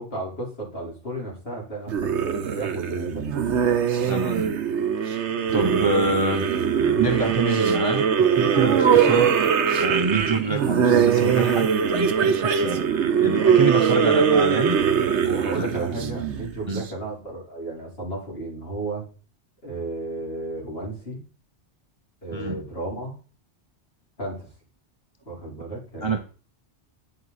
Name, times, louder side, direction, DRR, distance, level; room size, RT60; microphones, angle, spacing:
voice 1, 0.0-3.4 15.2-19.1 19.6-21.2 22.2-23.1 24.2-24.5 25.2-26.2, right 2 dB, 55° left, 4.3 m, -33 dB
sound 1, 1.9-16.8, right 7 dB, 75° right, 1.2 m, -21 dB
voice 2, 4.0-4.6 5.5-6.5 7.0-9.4 9.8-12.9 13.2-14.8 15.5-15.7 16.7-16.8 22.3-22.6 26.0-26.2, right 3 dB, 30° right, 0.6 m, -26 dB
9.7 x 7.4 x 4.1 m
omnidirectional pair, 1.2 m